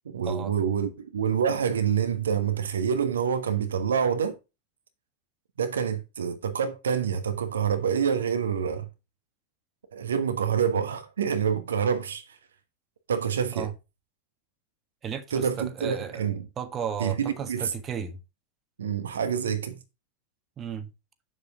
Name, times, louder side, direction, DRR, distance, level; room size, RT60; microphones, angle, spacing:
voice 1, 0.0-4.3 5.6-8.9 9.9-12.4 13.1-13.7 15.3-16.5 17.0-17.7 18.8-19.8, right 7 dB, 65° right, 1.2 m, -27 dB
voice 2, 15.0-16.2 16.6-18.2 20.6-20.9, right 7 dB, 25° right, 1.5 m, -34 dB
8.4 x 7.5 x 3.7 m
figure-of-eight pair, 90°, 0 cm